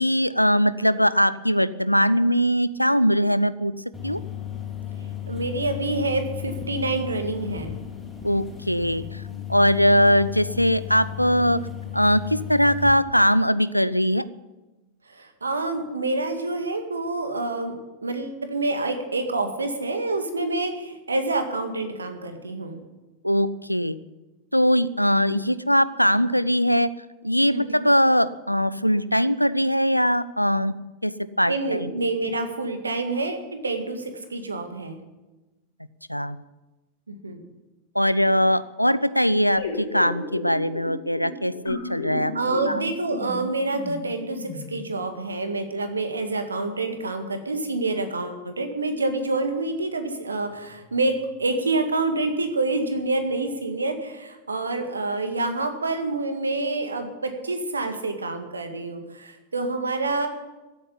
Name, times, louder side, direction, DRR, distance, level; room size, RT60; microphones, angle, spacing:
voice 1, 0.0-3.7 4.0-4.2 8.2-9.2 9.5-11.6 11.9-14.2 23.2-24.0 24.5-26.9 27.2-30.7 31.0-31.9 36.1-36.4 37.9-42.3 42.7-42.8, equal, 90° left, 17 dB, 0.5 m, -21 dB
sound 1, 3.9-12.9, left 10 dB, 10° left, 2.9 m, -35 dB
voice 2, 5.3-7.8 15.1-17.7 18.0-22.8 27.5-27.8 31.5-35.0 37.1-37.4 42.3-51.1 51.4-60.3, right 2 dB, 75° right, 7 dB, 1.9 m, -27 dB
sound 2, 39.6-45.0, left 3 dB, 65° left, 4.5 m, -34 dB
15.0 x 8.7 x 9.9 m, 1.1 s
figure-of-eight pair, 90°, 0 cm